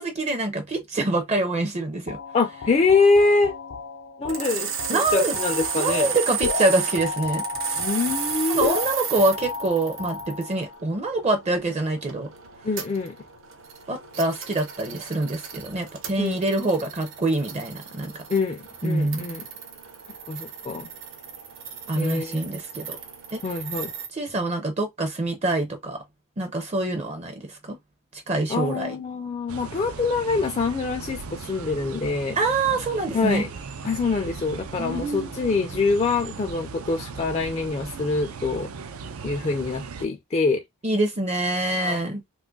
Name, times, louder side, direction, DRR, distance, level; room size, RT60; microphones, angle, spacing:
voice 1, 0.0-2.2 4.9-5.4 5.7-7.4 8.5-12.3 13.9-18.2 18.8-19.2 21.9-23.0 23.3-23.4 24.1-26.0 26.4-27.8 28.1-29.0 32.4-33.4 34.8-35.3 40.8-42.2, right 2 dB, 30° right, 0.5 m, -25 dB
sound 1, 2.1-10.8, left 5 dB, 85° left, 0.6 m, -33 dB
voice 2, 2.3-3.5 4.2-6.1 7.8-8.8 12.6-13.1 16.2-16.4 18.3-19.4 20.3-20.9 22.0-22.4 23.4-23.9 28.5-32.4 33.1-33.5 33.8-38.7 39.2-40.6 41.8-42.0, left 4 dB, 30° left, 0.3 m, -24 dB
sound 2, 4.3-24.1, right 8 dB, 65° right, 0.8 m, -34 dB
sound 3, 29.5-40.1, right 5 dB, 90° right, 0.5 m, -38 dB
2.9 x 2.3 x 3.8 m
head